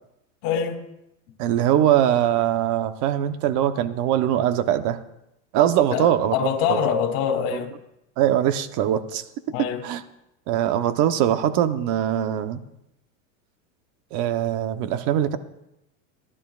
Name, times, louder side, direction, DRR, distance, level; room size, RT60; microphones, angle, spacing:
voice 1, 0.4-0.8 5.9-7.7 9.5-9.8, left 7 dB, 60° left, 2 dB, 3.2 m, -24 dB
voice 2, 1.4-5.0 5.5-6.3 6.7-6.8 8.2-9.2 9.6-10.0 10.5-12.6 14.1-15.4, right 11 dB, 45° right, 10 dB, 1.0 m, -22 dB
28.5 x 11.5 x 2.4 m, 0.86 s
supercardioid pair, 145°, 41 cm